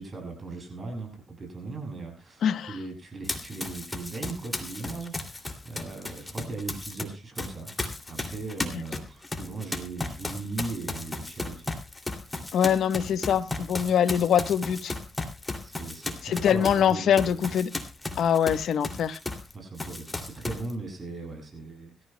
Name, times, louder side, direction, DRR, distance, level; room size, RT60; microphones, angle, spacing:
voice 1, 0.0-7.7 8.1-11.7 15.6-17.4 19.5-22.0, right 3 dB, 40° right, 7.1 m, -38 dB
voice 2, 2.4-2.7 12.5-14.9 16.2-17.7 18.2-19.2, left 8 dB, 75° left, 1.0 m, -23 dB
Run, 3.2-7.0 7.4-19.5 19.8-20.7, left 2 dB, 20° left, 2.6 m, -35 dB
24.0 x 14.0 x 2.2 m
cardioid pair, 90°, 0 cm